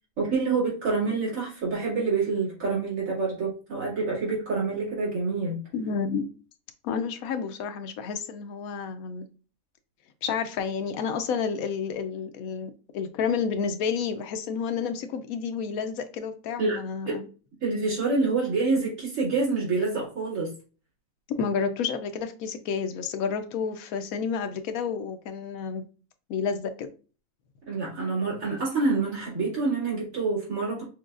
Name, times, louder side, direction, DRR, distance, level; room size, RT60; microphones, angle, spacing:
voice 1, 0.2-5.6 16.6-16.8 17.1-17.2 17.6-20.5 27.7-30.8, right 4 dB, 70° right, 2.5 m, -27 dB
voice 2, 5.7-6.3 6.8-9.3 10.2-17.2 21.3-25.8 26.3-26.9, left 6 dB, 85° left, 1.1 m, -30 dB
6.2 x 2.2 x 2.4 m
omnidirectional pair, 1.4 m